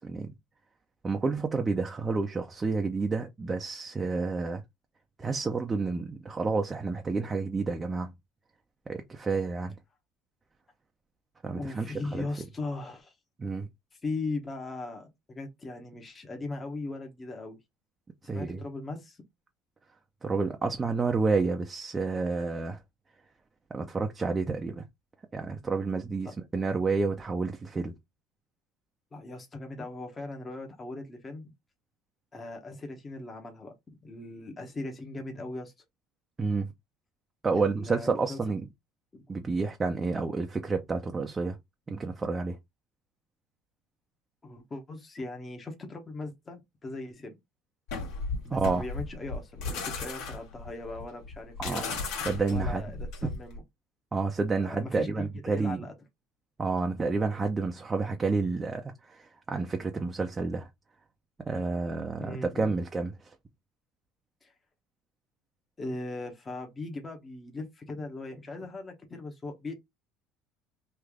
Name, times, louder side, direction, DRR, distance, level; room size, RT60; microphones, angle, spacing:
voice 1, 1.0-4.6 5.2-8.1 8.9-9.7 11.4-12.3 13.4-13.7 18.2-18.6 20.2-22.8 23.7-24.8 25.3-27.9 36.4-36.7 37.4-38.6 39.3-41.6 41.9-42.6 48.5-48.8 51.6-51.8 52.3-52.8 54.1-55.8 56.6-60.7 61.5-63.1, right 4 dB, 20° right, 0.5 m, -30 dB
voice 2, 11.5-13.2 13.9-17.6 18.2-19.2 29.1-31.5 32.3-33.7 34.0-35.7 37.5-38.4 39.1-39.3 44.4-47.4 48.4-51.9 52.5-53.6 54.6-55.3 55.5-55.9 62.2-62.7 64.4-64.5 65.8-69.7, left 2 dB, 20° left, 0.9 m, -39 dB
sound 1, 47.9-53.6, left 4 dB, 75° left, 1.5 m, -35 dB
3.2 x 2.5 x 3.6 m
cardioid pair, 120°, 0 cm